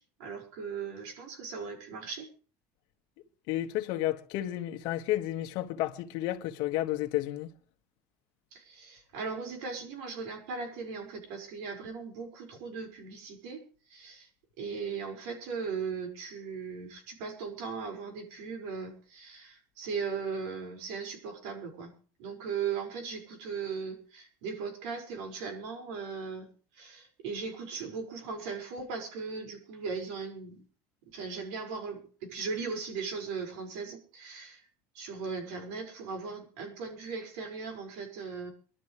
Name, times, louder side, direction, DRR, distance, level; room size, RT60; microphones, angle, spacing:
voice 1, 0.0-2.3 8.5-13.6 13.9-14.3 14.6-21.9 22.2-26.5 26.8-30.6 31.1-34.6 35.0-38.5, right 5 dB, 80° right, 5.4 m, -38 dB
voice 2, 3.5-7.5, left 14 dB, 65° left, 1.6 m, -32 dB
24.0 x 12.5 x 3.3 m
cardioid pair, 150°, 8 cm